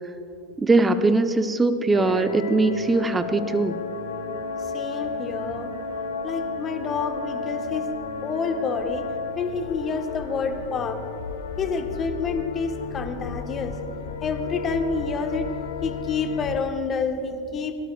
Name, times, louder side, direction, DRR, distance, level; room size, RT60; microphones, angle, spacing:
voice 1, 0.6-3.8, right 3 dB, 15° right, 9 dB, 0.8 m, -21 dB
sound 1, 1.9-16.6, left 4 dB, 65° left, 1.0 m, -33 dB
voice 2, 4.6-5.7 6.2-7.9 8.2-9.1 9.4-11.0 11.6-13.8 14.2-15.5 15.8-17.7, left 5 dB, 30° left, 6 dB, 1.3 m, -28 dB
23.5 x 17.5 x 2.4 m, 2.8 s
figure-of-eight pair, 85°, 0 cm